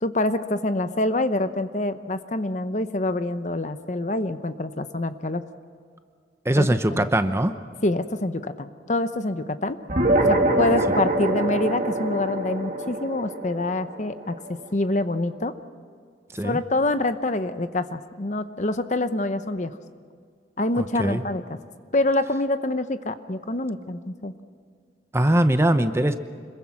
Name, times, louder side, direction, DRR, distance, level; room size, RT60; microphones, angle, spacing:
voice 1, 0.0-5.4 6.6-6.7 6.9-7.1 7.8-9.8 10.3-15.5 16.4-19.7 20.6-21.6 21.9-24.3, left 2 dB, 40° left, 11 dB, 0.9 m, -26 dB
voice 2, 6.4-7.5 16.3-16.6 20.8-21.2 25.1-26.2, right 1 dB, 15° right, 9 dB, 0.8 m, -21 dB
sound 1, 9.9-14.7, right 1 dB, 40° right, 2.5 m, -24 dB
26.5 x 22.0 x 6.0 m, 2.1 s
head